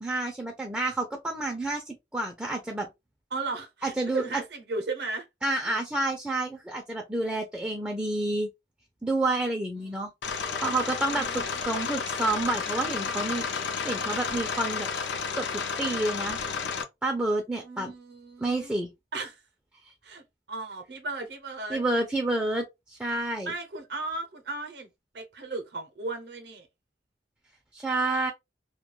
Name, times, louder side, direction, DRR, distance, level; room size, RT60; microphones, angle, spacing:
voice 1, 0.0-2.9 3.8-4.4 5.4-8.5 9.0-10.1 10.6-13.5 13.8-14.9 15.3-16.4 17.0-17.9 18.4-18.9 21.7-23.5 27.7-28.3, right 2 dB, 5° right, 0.4 m, -29 dB
voice 2, 3.3-5.3 5.6-5.7 9.8-9.9 11.1-11.6 17.6-18.8 19.1-19.4 20.0-20.2 20.5-21.8 23.5-24.9 25.1-26.7, right 3 dB, 65° right, 0.6 m, -36 dB
sound 1, 10.2-16.8, left 5 dB, 75° left, 0.5 m, -31 dB
2.2 x 2.2 x 2.9 m
head